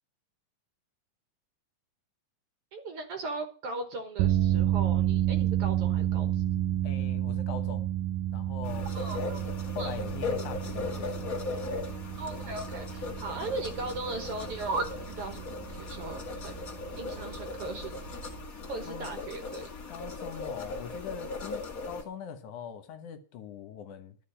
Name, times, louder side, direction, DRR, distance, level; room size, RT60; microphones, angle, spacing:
voice 1, 2.7-6.4 8.9-9.4 9.8-10.0 12.2-16.6 17.0-18.3 18.7-19.7, right 3 dB, 60° right, 1.8 m, -38 dB
sound 1, 4.2-18.5, right 12 dB, 85° right, 2.2 m, -31 dB
voice 2, 6.8-7.9 8.3-8.9 9.7-11.3 18.9-19.1 19.9-24.2, left 7 dB, 75° left, 2.5 m, -41 dB
sound 2, 8.6-22.0, left 4 dB, 30° left, 1.9 m, -38 dB
12.5 x 4.9 x 8.6 m
omnidirectional pair, 3.6 m